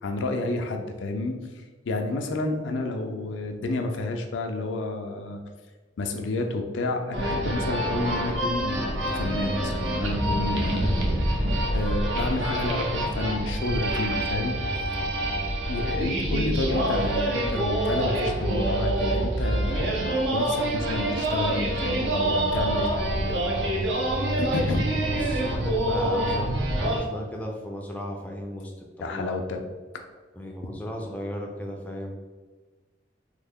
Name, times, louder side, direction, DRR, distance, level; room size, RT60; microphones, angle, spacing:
voice 1, 0.0-1.4 1.9-5.4 6.0-11.1 11.7-14.6 15.7-23.1 24.4-25.2 29.0-29.6, left 2 dB, 80° left, 4 dB, 0.4 m, -30 dB
sound 1, 7.1-27.0, right 1 dB, 75° right, 0.6 m, -26 dB
voice 2, 25.1-29.4 30.3-32.1, equal, 10° left, 0 dB, 0.3 m, -36 dB
3.2 x 2.1 x 3.4 m, 1.3 s
head